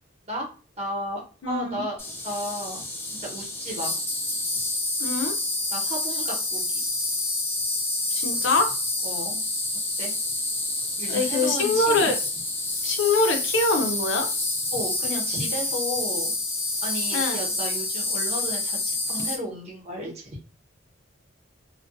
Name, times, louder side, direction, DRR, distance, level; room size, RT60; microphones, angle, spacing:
voice 1, 0.8-2.0 2.2-3.9 5.7-6.8 9.0-9.4 10.0-10.1 11.0-12.1 14.7-16.3 16.8-20.4, equal, 35° right, -2 dB, 1.0 m, -33 dB
voice 2, 1.4-1.8 5.0-5.3 8.1-8.7 11.1-12.2 12.8-14.3 17.1-17.4, left 3 dB, 75° left, 5 dB, 0.6 m, -24 dB
Insect, 2.0-19.3, left 2 dB, 15° left, 0.5 m, -28 dB
2.3 x 2.1 x 2.5 m, 0.37 s
head